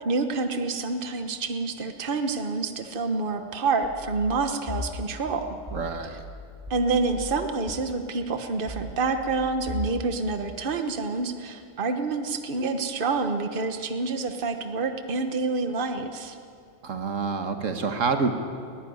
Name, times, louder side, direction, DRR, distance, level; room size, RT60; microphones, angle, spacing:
voice 1, 0.0-5.4 6.1-6.2 6.7-16.4, right 3 dB, 45° right, 7 dB, 1.4 m, -28 dB
sound 1, 3.8-7.7 8.7-10.0, left 2 dB, 30° right, 4.6 m, -38 dB
voice 2, 5.7-6.2 16.8-18.3, right 4 dB, 80° right, 6 dB, 1.8 m, -27 dB
19.5 x 15.5 x 9.6 m, 2.4 s
omnidirectional pair, 1.3 m